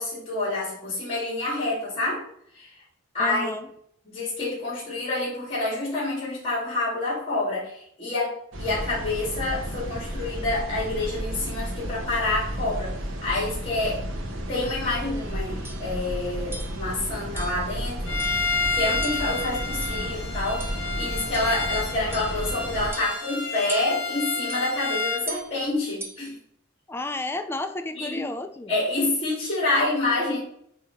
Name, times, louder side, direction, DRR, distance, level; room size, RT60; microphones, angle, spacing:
voice 1, 0.0-2.2 2.5-2.7 3.1-3.5 4.1-12.9 13.2-14.0 14.5-18.2 18.7-26.4 27.9-28.2 28.7-30.4, left 2 dB, 30° left, -6 dB, 2.1 m, -28 dB
voice 2, 3.2-3.7 26.9-28.7, left 2 dB, 10° left, 9 dB, 0.4 m, -31 dB
sound 1, 8.5-22.9, equal, 75° right, 0.9 m, -33 dB
sound 2, 15.1-15.3 15.6-15.9 16.5-16.8 17.4-17.7 18.2-18.5 19.0-19.4 19.8-20.2 20.6-20.8 21.3-21.6 22.1-22.4 22.9-23.3 23.7-24.1 24.5-24.7 25.3-25.5 26.0-26.3, right 2 dB, 10° right, 0.7 m, -39 dB
Bowed string instrument, 18.1-25.3, left 3 dB, 60° left, 1.2 m, -30 dB
7.6 x 2.8 x 4.5 m, 0.69 s
head